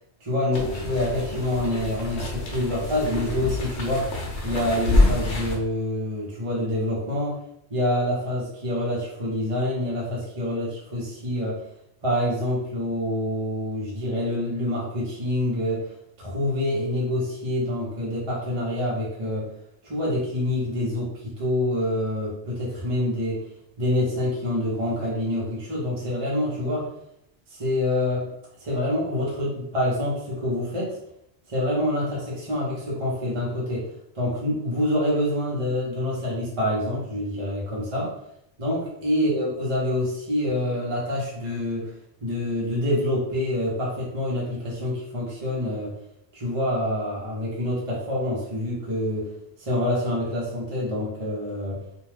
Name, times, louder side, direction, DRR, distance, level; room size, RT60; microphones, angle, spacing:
voice 1, 0.2-4.1 4.4-7.4 7.7-11.6 12.0-15.9 16.2-19.5 19.8-23.4 23.8-26.9 27.5-28.3 28.6-31.0 31.5-33.9 34.1-38.1 38.6-41.9 42.2-45.9 46.3-49.3 49.6-51.8, left 1 dB, 35° right, -5 dB, 0.7 m, -26 dB
sound 1, 0.5-5.6, left 2 dB, 75° left, 0.9 m, -26 dB
2.5 x 2.2 x 3.2 m, 0.77 s
omnidirectional pair, 1.1 m